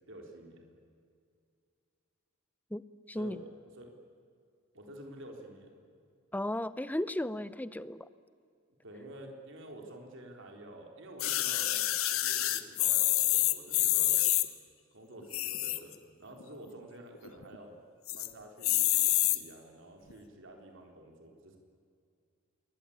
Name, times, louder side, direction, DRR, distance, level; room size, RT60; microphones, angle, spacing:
voice 1, 0.1-0.8 3.2-3.9 4.7-5.7 8.8-14.2 14.9-17.7 18.1-21.6, right 1 dB, 60° right, 2 dB, 3.9 m, -49 dB
voice 2, 2.7-3.4 6.3-8.1, left 1 dB, 10° left, 15 dB, 0.7 m, -35 dB
sound 1, 11.2-14.5 15.2-15.9 16.4-16.5 16.7-16.8 17.1-17.6 18.1-18.3 18.6-19.4 20.1-20.2, left 15 dB, 75° left, 1.4 m, -27 dB
27.5 x 22.5 x 8.7 m, 2.3 s
head